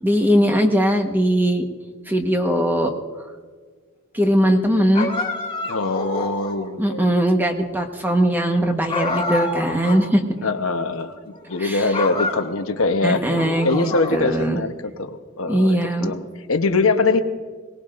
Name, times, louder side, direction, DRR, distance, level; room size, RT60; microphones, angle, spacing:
voice 1, 0.0-1.6 2.1-2.9 4.1-5.1 6.8-10.2 11.6-11.9 13.0-14.6 15.5-16.1, equal, 10° right, 4 dB, 1.1 m, -20 dB
sound 1, 4.9-6.7 8.9-10.1 10.4-10.5 11.3-11.6 11.9-12.9 13.3-14.5, left 2 dB, 25° left, 2.0 m, -28 dB
voice 2, 5.6-7.1 10.4-17.2, left 3 dB, 75° left, 7 dB, 0.9 m, -23 dB
22.5 x 19.0 x 2.5 m, 1.6 s
head